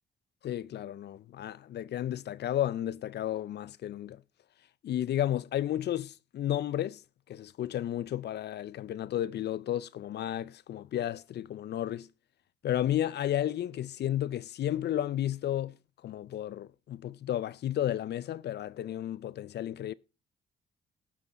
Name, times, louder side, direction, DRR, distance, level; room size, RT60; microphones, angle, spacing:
voice 1, 0.4-4.2 4.8-7.0 7.3-12.1 12.6-15.8 16.0-19.9, left 12 dB, 55° left, 0.5 m, -32 dB
17.5 x 6.1 x 4.1 m
cardioid pair, 90°, 20 cm